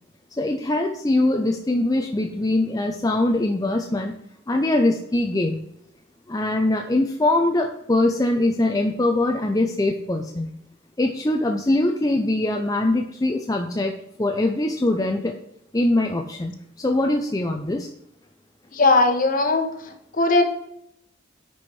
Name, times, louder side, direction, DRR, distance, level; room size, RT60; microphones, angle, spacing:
voice 1, 0.4-4.1 4.5-5.6 6.3-10.5 11.0-13.9 14.2-15.3 15.7-17.9, left 2 dB, 20° left, 2 dB, 0.6 m, -22 dB
voice 2, 18.7-20.4, left 3 dB, 45° left, 6 dB, 1.2 m, -19 dB
9.7 x 4.6 x 4.7 m, 0.77 s
head